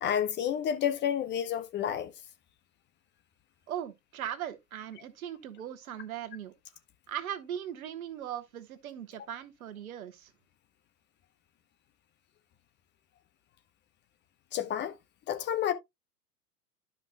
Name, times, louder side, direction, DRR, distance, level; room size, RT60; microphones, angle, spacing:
voice 1, 0.0-2.1 14.5-14.9 15.3-15.7, left 9 dB, 25° left, 0.8 m, -30 dB
voice 2, 3.7-6.5 7.1-10.3, right 10 dB, 60° right, 1.3 m, -39 dB
12.0 x 5.3 x 2.2 m
figure-of-eight pair, 95°, 47 cm